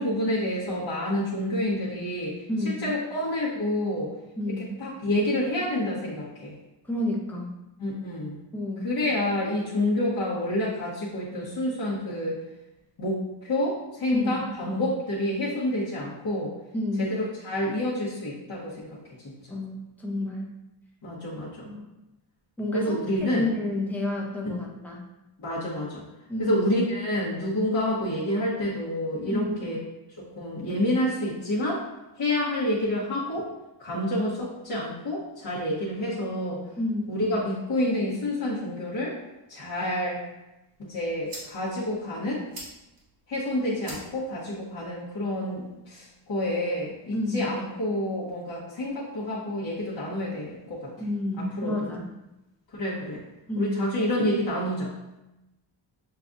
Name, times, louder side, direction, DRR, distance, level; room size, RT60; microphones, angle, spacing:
voice 1, 0.0-4.1 4.6-6.5 7.8-8.4 8.8-12.4 13.0-16.5 17.0-19.0 19.2-19.3 21.0-21.7 22.7-23.5 25.4-26.0 26.4-29.8 30.2-31.8 32.2-33.5 33.8-36.6 37.1-39.2 39.5-40.2 40.9-42.4 43.3-50.9 51.6-51.7 52.7-53.2 53.6-54.9, left 1 dB, 55° left, -9 dB, 1.2 m, -28 dB
voice 2, 2.5-2.9 4.4-4.7 6.9-7.5 8.5-8.9 14.1-14.4 16.7-17.1 19.5-20.5 21.6-21.8 22.6-23.0 23.3-25.0 26.3-26.6 29.3-29.6 36.8-37.1 47.1-47.4 51.0-52.0 53.5-53.8, left 1 dB, 5° left, -2 dB, 0.6 m, -30 dB
sound 1, 40.7-46.7, right 1 dB, 45° right, 1.3 m, -48 dB
6.7 x 2.4 x 2.6 m, 0.96 s
wide cardioid pair, 160°, 47 cm